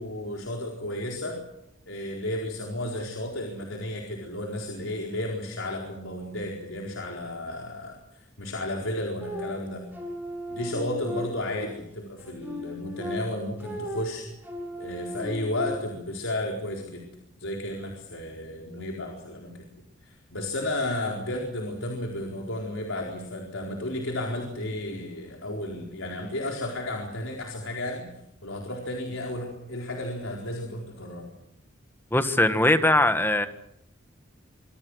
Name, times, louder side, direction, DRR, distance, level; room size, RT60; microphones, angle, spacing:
voice 1, 0.0-1.4 1.9-9.8 10.5-14.3 14.8-17.0 17.4-19.7 20.0-28.1 28.4-31.3, left 1 dB, 90° left, 0 dB, 4.3 m, -33 dB
sound 1, 9.2-11.7 12.2-16.1, equal, 10° right, 7.1 m, -36 dB
voice 2, 32.1-33.5, left 1 dB, 10° left, 9 dB, 1.5 m, -21 dB
25.5 x 25.0 x 6.4 m, 0.80 s
head